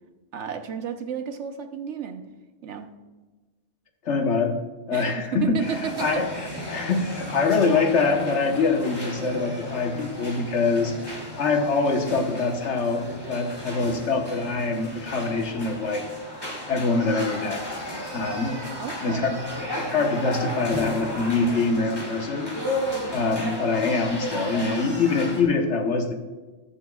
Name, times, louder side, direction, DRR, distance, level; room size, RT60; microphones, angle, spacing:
voice 1, 0.3-2.2 2.6-2.9 4.9-6.2 18.8-19.4, right 7 dB, 70° right, 7 dB, 1.1 m, -32 dB
voice 2, 4.0-4.6 4.9-5.6 6.0-10.9 11.4-16.1 16.7-17.7 18.1-18.6 19.0-19.4 19.7-22.5 23.1-26.1, left 4 dB, 70° left, 3 dB, 1.5 m, -24 dB
sound 1, 5.6-25.4, equal, 20° left, 2.3 m, -34 dB
21.0 x 7.1 x 2.4 m, 1.2 s
omnidirectional pair, 1.2 m